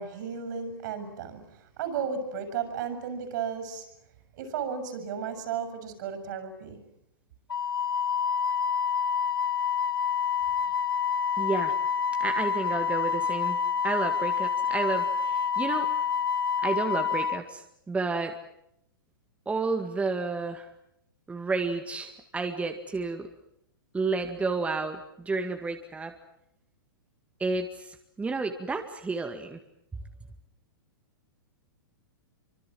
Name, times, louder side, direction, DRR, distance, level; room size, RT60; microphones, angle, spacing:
voice 1, 0.0-3.9 4.3-6.8, right 6 dB, 55° right, 10 dB, 7.1 m, -34 dB
Wind instrument woodwind instrument, 7.5-17.4, left 7 dB, 90° left, 1.8 m, -27 dB
voice 2, 11.4-11.7 12.2-15.9 16.6-18.3 19.5-20.7 21.3-23.3 23.9-26.1 27.4-29.6, right 3 dB, 10° right, 5 dB, 2.1 m, -31 dB
25.5 x 25.5 x 7.7 m, 0.76 s
hypercardioid pair, 120°, 12 cm